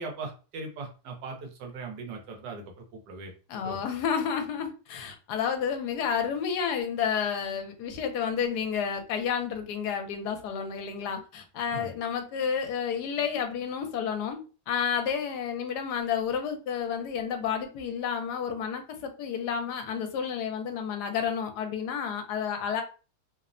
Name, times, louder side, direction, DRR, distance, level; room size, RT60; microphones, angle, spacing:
voice 1, 0.0-3.3 3.6-3.8 11.7-11.9, right 3 dB, 80° right, 2 dB, 1.3 m, -39 dB
voice 2, 3.5-14.4 14.7-22.8, left 7 dB, 75° left, 5 dB, 1.1 m, -30 dB
3.1 x 2.0 x 2.4 m, 0.34 s
omnidirectional pair, 1.8 m